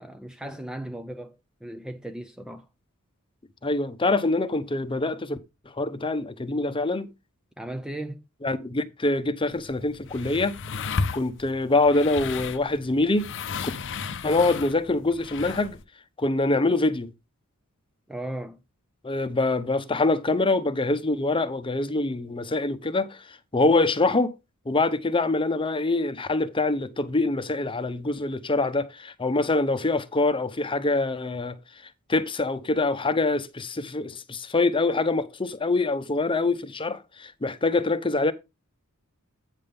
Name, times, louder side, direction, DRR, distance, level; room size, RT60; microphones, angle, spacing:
voice 1, 0.0-2.7 7.6-8.2 18.1-18.6, right 1 dB, 5° right, 0.4 m, -36 dB
voice 2, 3.6-5.4 5.8-7.1 8.4-10.6 11.1-13.3 14.2-15.8 16.2-17.1 19.0-24.3 24.7-31.6 32.1-38.3, left 2 dB, 25° left, 0.8 m, -25 dB
sound 1, 9.5-15.8, left 5 dB, 55° left, 0.7 m, -34 dB
9.0 x 3.6 x 6.9 m
head